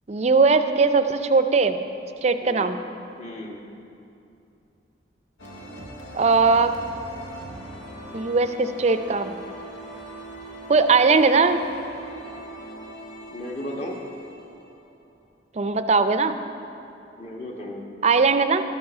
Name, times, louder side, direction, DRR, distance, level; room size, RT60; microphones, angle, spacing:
voice 1, 0.1-1.8 2.2-2.8 6.1-6.7 8.1-9.3 10.7-11.6 15.6-16.4 18.0-18.6, right 4 dB, 35° right, 9 dB, 0.4 m, -19 dB
voice 2, 2.4-2.7 3.2-3.6 13.3-14.0 17.2-17.8, left 1 dB, 35° left, 0 dB, 1.3 m, -35 dB
sound 1, 5.4-15.2, right 1 dB, 90° left, 1.8 m, -41 dB
12.5 x 7.3 x 6.2 m, 2.7 s
head